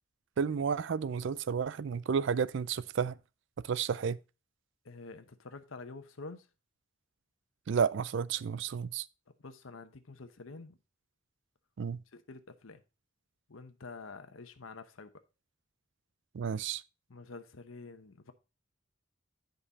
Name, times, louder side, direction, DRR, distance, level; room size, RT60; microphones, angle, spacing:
voice 1, 0.4-3.1 3.7-4.2 7.7-9.1 11.8-12.0 16.3-16.8, right 6 dB, 65° right, 0.4 m, -31 dB
voice 2, 4.8-6.4 9.4-10.8 12.1-12.8 13.5-15.1 17.1-18.3, left 3 dB, 85° left, 0.9 m, -48 dB
9.9 x 5.3 x 4.0 m
head